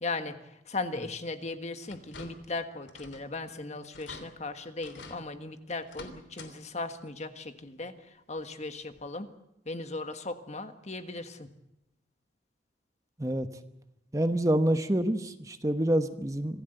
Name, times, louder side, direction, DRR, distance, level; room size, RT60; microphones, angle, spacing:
voice 1, 0.0-0.3 0.7-7.9 8.3-9.3 9.7-11.5, left 3 dB, 40° left, 8 dB, 1.5 m, -37 dB
sound 1, 1.9-2.6 2.9-3.3 3.6-3.7 3.9-4.3 4.8-5.2 5.8-6.5 6.9-7.0 8.4-8.5 9.0-9.1, left 3 dB, 85° left, 3.1 m, -47 dB
voice 2, 14.1-16.6, right 1 dB, 20° right, 9 dB, 1.0 m, -27 dB
25.5 x 16.0 x 8.0 m, 0.87 s
head